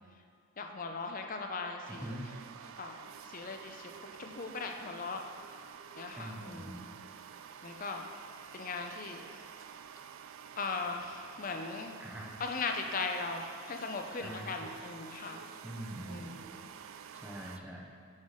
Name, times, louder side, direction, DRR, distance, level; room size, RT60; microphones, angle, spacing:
voice 1, 0.6-2.2 2.8-5.2 6.0-6.9 7.6-8.1 8.5-9.2 10.6-11.9 12.4-15.4 16.1-16.6 17.5-17.6, left 4 dB, 40° left, 4 dB, 0.5 m, -39 dB
sound 1, 1.8-17.6, right 7 dB, 70° right, 0.3 m, -49 dB
voice 2, 1.9-2.3 6.1-6.9 12.0-12.4 14.2-14.7 15.6-16.4 17.1-17.9, equal, 5° right, -1 dB, 0.6 m, -43 dB
6.4 x 5.6 x 4.9 m, 2.1 s
head